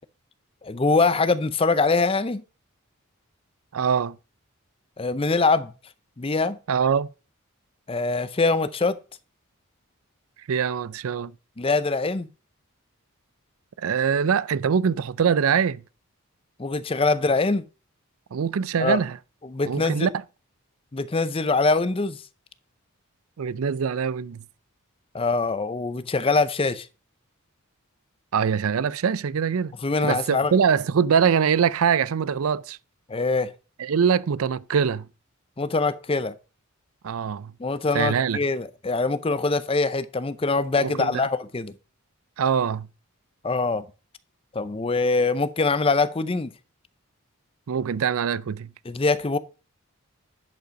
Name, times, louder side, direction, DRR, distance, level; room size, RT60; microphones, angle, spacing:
voice 1, 0.6-2.4 5.0-5.7 6.2-6.6 7.9-9.0 11.6-12.3 16.6-17.6 18.8-19.0 19.4-20.1 20.9-22.2 25.1-26.9 29.8-30.5 33.1-33.5 35.6-36.3 37.6-41.7 43.4-43.8 44.5-46.5 48.9-49.4, left 3 dB, 25° left, 0.5 m, -23 dB
voice 2, 3.7-4.2 6.7-7.1 10.5-11.3 13.8-15.8 18.3-19.2 19.7-20.1 23.4-24.4 28.3-29.7 30.0-32.8 33.8-35.1 37.0-37.5 37.9-38.4 40.8-41.3 42.4-42.9 47.7-48.7, right 7 dB, 75° right, 0.4 m, -23 dB
10.5 x 5.4 x 5.1 m
head